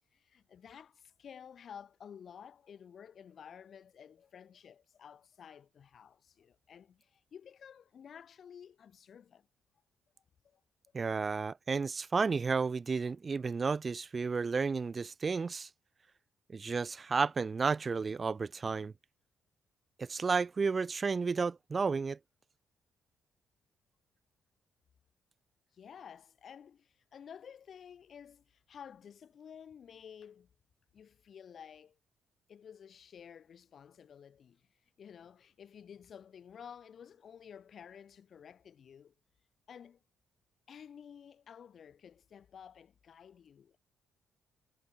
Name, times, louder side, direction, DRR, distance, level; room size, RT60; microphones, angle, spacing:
voice 1, 0.1-9.5 10.4-10.6 10.9-11.0 25.7-30.5 30.9-32.0 32.5-34.7 35.0-39.1 39.7-40.0 40.7-43.8, left 8 dB, 55° left, 2.7 m, -52 dB
voice 2, 10.9-15.7 16.5-18.9 20.0-22.2, right 4 dB, 35° right, 0.3 m, -32 dB
cardioid pair, 90°, 0 cm